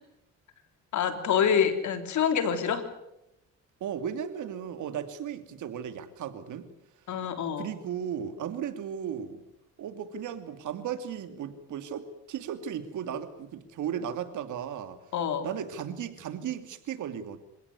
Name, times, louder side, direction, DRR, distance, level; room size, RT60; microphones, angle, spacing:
voice 1, 0.9-2.9 7.1-7.7 15.1-15.5, left 7 dB, 70° left, 8 dB, 3.6 m, -26 dB
voice 2, 3.8-6.7 7.6-9.4 9.8-15.0 15.4-17.4, right 8 dB, 80° right, 9 dB, 2.7 m, -35 dB
27.0 x 17.0 x 9.7 m, 0.85 s
cardioid pair, 90°, 30 cm